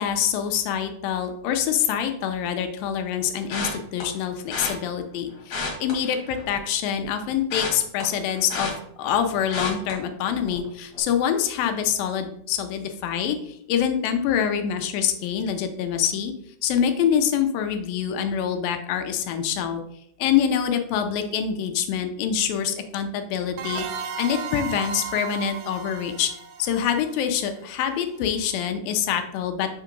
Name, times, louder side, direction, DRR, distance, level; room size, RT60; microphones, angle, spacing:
voice 1, 0.0-16.3 16.6-19.8 20.2-26.3 26.6-29.7, left 8 dB, 85° left, 7 dB, 2.5 m, -25 dB
sound 1, 3.5-4.0 4.5-4.7 5.4-6.7 7.0-9.2 9.5-9.9 10.4-10.7 10.9-11.0, left 4 dB, 55° left, 3.0 m, -31 dB
sound 2, 23.6-28.1, right 5 dB, 85° right, 2.3 m, -35 dB
7.1 x 3.7 x 5.1 m, 0.70 s
omnidirectional pair, 4.0 m